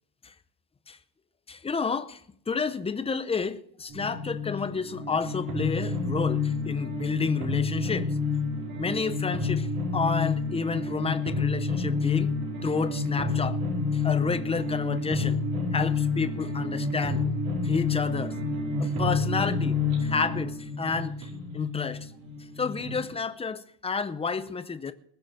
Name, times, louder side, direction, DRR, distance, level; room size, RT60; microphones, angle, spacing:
voice 1, 1.5-2.2 2.5-8.1 8.8-12.3 12.6-13.6 13.9-15.4 15.7-17.2 17.6-18.4 18.8-21.3 21.5-22.1 22.6-24.9, left 5 dB, 15° left, 0.6 m, -30 dB
sound 1, 3.9-23.0, left 4 dB, 55° right, 5.0 m, -29 dB
20.5 x 7.0 x 6.4 m
cardioid pair, 165°, 43 cm